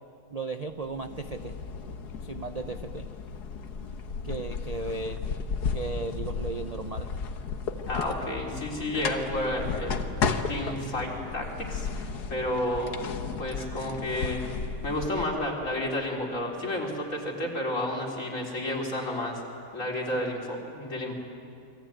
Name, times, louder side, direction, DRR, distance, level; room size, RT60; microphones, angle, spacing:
voice 1, 0.3-1.6 2.2-3.1 4.2-5.2 5.7-7.1, right 3 dB, 35° right, 8 dB, 0.6 m, -35 dB
sound 1, 0.7-15.2, left 5 dB, 85° left, 1.8 m, -34 dB
voice 2, 7.9-10.1 10.5-13.0 13.4-14.4 14.8-19.4 19.7-21.1, left 1 dB, 55° left, -1 dB, 4.3 m, -31 dB
29.0 x 22.5 x 9.2 m, 2.6 s
omnidirectional pair, 1.7 m